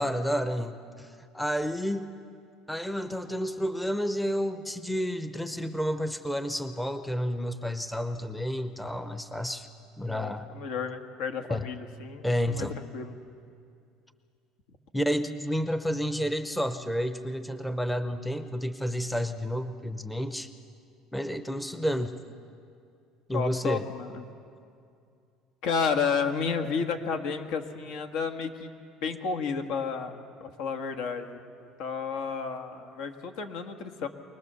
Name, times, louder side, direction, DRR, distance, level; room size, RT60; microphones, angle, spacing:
voice 1, 0.0-2.2 2.7-9.7 10.0-10.5 11.5-11.7 12.2-12.7 14.9-20.5 21.1-22.1 23.3-23.8, equal, 5° left, 10 dB, 0.7 m, -30 dB
voice 2, 10.0-12.7 12.9-13.2 23.3-24.3 25.6-28.7 29.0-31.4 31.8-34.1, left 5 dB, 70° left, 6 dB, 1.7 m, -31 dB
23.5 x 19.5 x 6.9 m, 2.4 s
cardioid pair, 135°, 0 cm